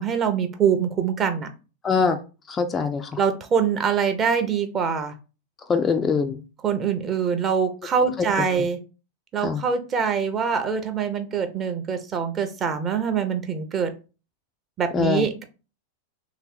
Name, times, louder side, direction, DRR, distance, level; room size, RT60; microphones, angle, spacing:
voice 1, 0.0-1.5 3.2-5.1 6.6-8.8 9.3-13.9 14.8-15.4, right 6 dB, 25° right, 0.7 m, -24 dB
voice 2, 1.8-2.2 2.5-3.2 5.7-6.4 9.4-9.6 14.9-15.2, left 5 dB, 20° left, 0.4 m, -23 dB
3.2 x 3.0 x 4.5 m
figure-of-eight pair, 90°, 0 cm